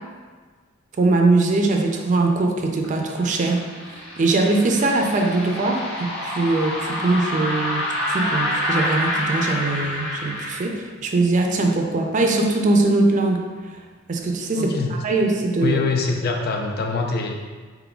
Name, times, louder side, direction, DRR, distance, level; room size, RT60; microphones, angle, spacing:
voice 1, 1.0-13.4 14.1-15.8, right 2 dB, 40° right, 2 dB, 0.4 m, -21 dB
sound 1, 2.8-10.6, left 1 dB, 85° left, 1.1 m, -27 dB
voice 2, 14.6-14.9 15.6-17.5, left 4 dB, 50° left, 2 dB, 0.4 m, -24 dB
4.2 x 3.8 x 2.3 m, 1.5 s
head